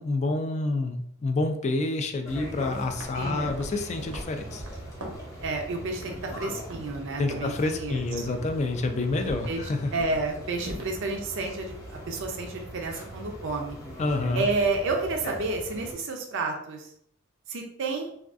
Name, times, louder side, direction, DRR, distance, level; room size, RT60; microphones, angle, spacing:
voice 1, 0.0-4.6 7.2-9.9 14.0-14.5, left 2 dB, 35° left, 5 dB, 0.3 m, -28 dB
sound 1, 2.2-15.9, equal, 15° left, 0.9 m, -41 dB
sound 2, 2.9-3.2 3.4-5.3 6.7-7.1 7.3-7.6 8.3-8.6 9.1-9.6 9.9-10.3 10.6-11.0, right 1 dB, 85° right, 0.8 m, -40 dB
voice 2, 3.1-3.6 5.4-8.4 9.5-11.8 12.1-13.8 14.3-16.9 17.5-18.1, right 3 dB, 60° right, 2 dB, 0.5 m, -30 dB
3.4 x 2.3 x 2.4 m, 0.70 s
head